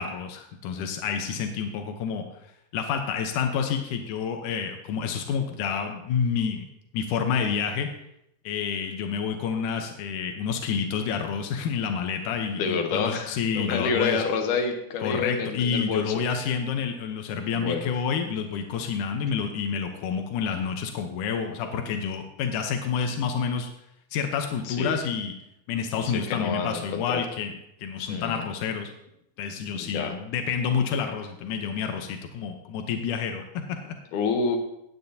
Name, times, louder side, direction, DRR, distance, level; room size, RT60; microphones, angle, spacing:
voice 1, 0.0-2.2 2.7-6.6 6.9-7.9 8.4-14.2 15.0-23.7 24.1-25.3 25.7-27.5 27.8-28.9 29.4-34.0, left 6 dB, 85° left, 5 dB, 1.8 m, -29 dB
voice 2, 12.6-16.5 17.5-17.9 24.6-25.0 26.0-27.3 28.1-28.4 29.7-30.1 34.1-34.6, left 5 dB, 70° left, 4 dB, 2.0 m, -28 dB
17.5 x 9.0 x 2.8 m, 0.79 s
omnidirectional pair, 5.0 m